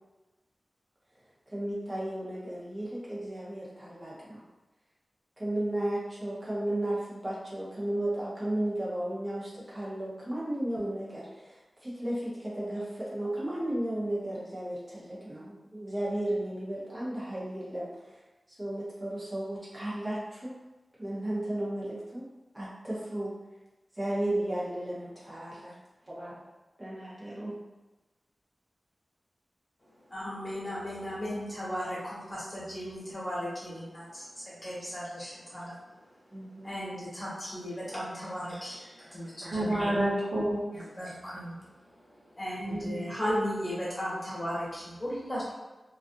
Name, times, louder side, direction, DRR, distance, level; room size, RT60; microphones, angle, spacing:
voice 1, 1.5-4.4 5.4-11.5 11.8-17.9 18.6-20.5 21.0-22.3 22.5-23.3 24.0-25.7 26.1-26.4 26.8-27.5 36.3-36.7, right 1 dB, 30° right, -8 dB, 0.7 m, -34 dB
voice 2, 30.1-36.1 36.4-40.0 41.0-45.5, equal, 30° left, -8 dB, 1.1 m, -36 dB
voice 3, 39.4-40.6 42.6-43.0, right 1 dB, 65° right, -9 dB, 1.1 m, -29 dB
2.4 x 2.4 x 2.5 m, 1.1 s
wide cardioid pair, 65°, 0 cm